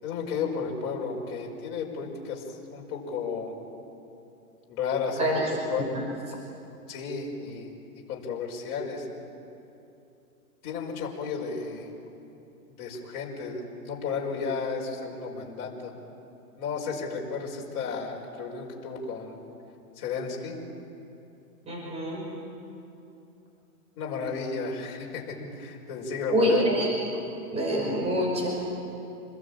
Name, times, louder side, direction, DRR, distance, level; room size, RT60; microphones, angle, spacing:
voice 1, 0.0-3.5 4.7-5.3 5.7-5.9 6.9-9.1 10.6-11.9 12.8-15.9 16.6-19.4 19.9-20.6 23.9-26.8, left 5 dB, 35° left, -2 dB, 5.3 m, -33 dB
voice 2, 5.2-5.5 5.8-6.0 21.7-22.2 26.3-26.9 27.5-28.5, right 1 dB, 15° right, -2 dB, 5.4 m, -26 dB
27.5 x 21.0 x 8.8 m, 2.8 s
hypercardioid pair, 145°, 45 cm